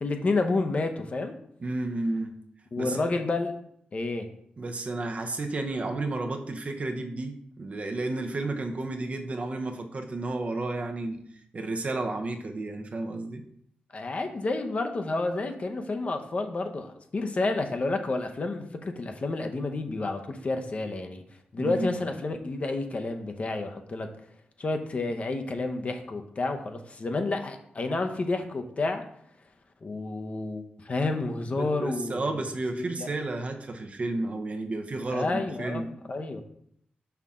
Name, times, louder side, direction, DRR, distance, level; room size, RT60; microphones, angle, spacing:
voice 1, 0.0-1.3 2.7-3.6 3.9-4.3 13.9-21.2 21.5-24.1 24.6-29.0 29.8-32.4 33.0-33.1 35.1-36.4, left 3 dB, 40° left, 5 dB, 0.8 m, -30 dB
voice 2, 1.6-2.3 2.8-3.1 4.6-11.2 11.5-13.4 21.6-22.0 31.5-35.9, right 2 dB, 40° right, 4 dB, 0.7 m, -32 dB
5.7 x 5.6 x 3.7 m, 0.69 s
wide cardioid pair, 110°, 3 cm